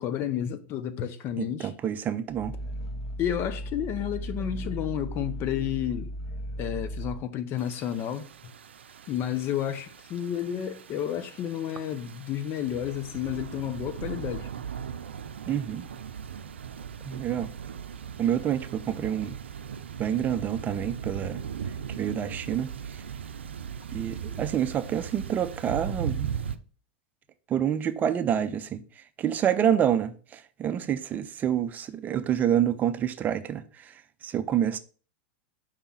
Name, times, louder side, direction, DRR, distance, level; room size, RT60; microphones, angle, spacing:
voice 1, 0.0-1.7 3.2-6.1 6.6-8.2 9.1-14.5 24.3-24.4, left 10 dB, 40° left, 0.7 m, -31 dB
voice 2, 1.4-2.5 15.5-15.8 17.0-17.5 18.2-19.3 20.0-21.4 22.0-23.0 23.9-26.3 27.5-34.8, right 9 dB, 30° right, 0.5 m, -28 dB
Growling, 2.3-7.2, equal, ahead, 1.8 m, -36 dB
sound 1, 7.6-26.6, right 7 dB, 90° right, 0.5 m, -38 dB
4.9 x 3.5 x 5.6 m
hypercardioid pair, 110°, 6 cm